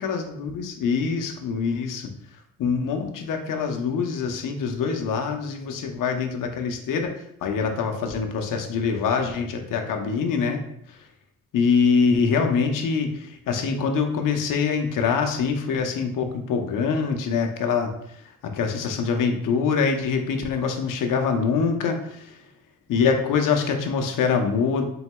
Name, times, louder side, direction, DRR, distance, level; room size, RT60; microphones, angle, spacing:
voice 1, 0.0-2.1 2.6-10.6 10.9-11.0 11.5-22.4 22.9-24.9, left 5 dB, 65° left, 5 dB, 0.7 m, -24 dB
4.1 x 3.8 x 2.2 m, 0.73 s
cardioid pair, 80°, 34 cm